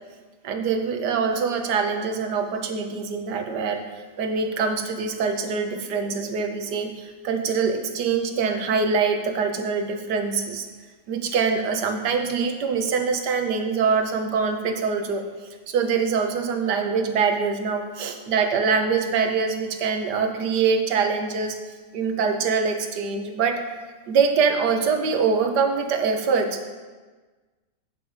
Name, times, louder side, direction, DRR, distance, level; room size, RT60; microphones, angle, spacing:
voice 1, 0.4-3.8 4.2-10.7 11.1-15.2 15.7-21.6 21.9-23.6 24.1-26.7, right 5 dB, 75° right, 6 dB, 1.5 m, -24 dB
8.6 x 8.2 x 5.0 m, 1.3 s
omnidirectional pair, 1.8 m